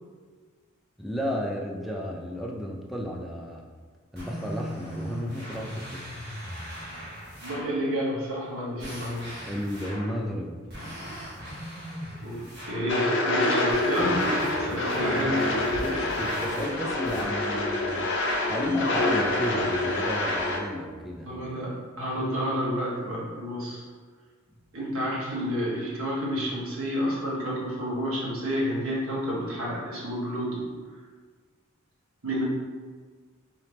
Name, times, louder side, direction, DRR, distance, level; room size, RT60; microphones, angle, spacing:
voice 1, 1.0-3.6 4.1-6.0 9.5-10.6 15.8-18.1 18.5-21.3, left 1 dB, ahead, -1 dB, 0.3 m, -33 dB
sound 1, 4.1-7.8 8.8-10.2 10.7-13.0 13.7-17.6, equal, 50° right, 1.4 m, -40 dB
voice 2, 7.4-9.4 12.2-15.8 21.2-23.8 24.7-30.6 32.2-32.4, equal, 75° right, -5 dB, 1.2 m, -30 dB
sound 2, 12.9-20.6, left 2 dB, 55° left, 0.6 m, -26 dB
4.0 x 2.8 x 3.4 m, 1.5 s
head